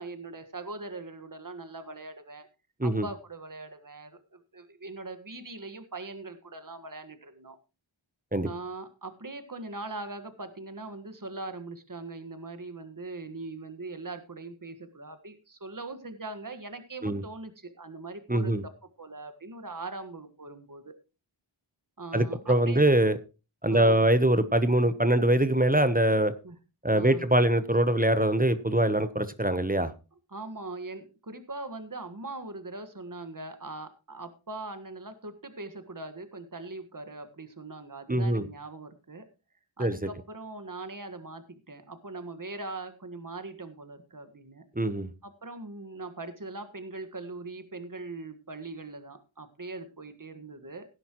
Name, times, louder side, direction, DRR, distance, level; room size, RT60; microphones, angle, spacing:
voice 1, 0.0-2.5 2.8-7.6 8.4-18.5 19.0-21.0 22.0-22.8 23.7-24.0 26.4-26.5 26.9-27.2 30.3-39.2 39.8-44.6 45.2-50.9, right 2 dB, 40° right, 1.6 m, -41 dB
voice 2, 18.3-18.6 22.1-23.1 23.6-26.3 26.8-29.9 38.1-38.4 39.8-40.0 44.8-45.1, right 1 dB, 15° right, 0.9 m, -23 dB
17.0 x 9.9 x 3.0 m
wide cardioid pair, 50°, 49 cm